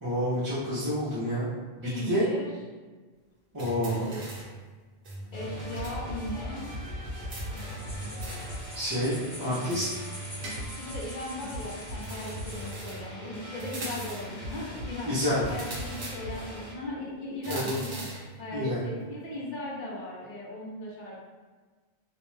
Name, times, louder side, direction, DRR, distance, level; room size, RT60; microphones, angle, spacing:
voice 1, 0.0-1.5 1.8-2.2 3.5-4.1 8.7-10.0 15.1-15.4 17.5-17.7 18.5-18.8, equal, 30° right, -11 dB, 0.5 m, -29 dB
voice 2, 1.8-2.5 3.8-4.3 5.3-6.7 10.7-15.1 15.5-18.1 18.4-21.2, left 1 dB, 60° left, -4 dB, 0.7 m, -37 dB
sound 1, 3.6-4.6 5.0-6.0 6.3-6.4 7.3-8.6 9.7-11.0 12.0-13.1 13.6-14.4 15.5-16.5 17.4-18.3, right 1 dB, 60° right, 0.8 m, -40 dB
sound 2, 5.3-16.7, equal, 90° left, 1.1 m, -40 dB
sound 3, 7.6-12.9, equal, ahead, 0.8 m, -46 dB
2.5 x 2.1 x 3.1 m, 1.4 s
omnidirectional pair, 1.0 m